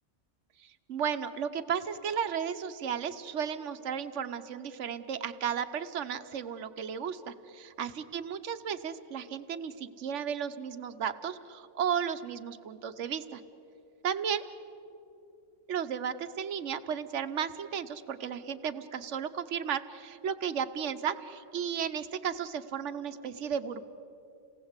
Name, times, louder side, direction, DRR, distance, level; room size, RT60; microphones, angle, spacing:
voice 1, 0.6-13.4 14.0-14.4 15.7-23.8, right 8 dB, 75° right, 11 dB, 1.2 m, -34 dB
28.5 x 19.0 x 8.2 m, 2.7 s
omnidirectional pair, 1.3 m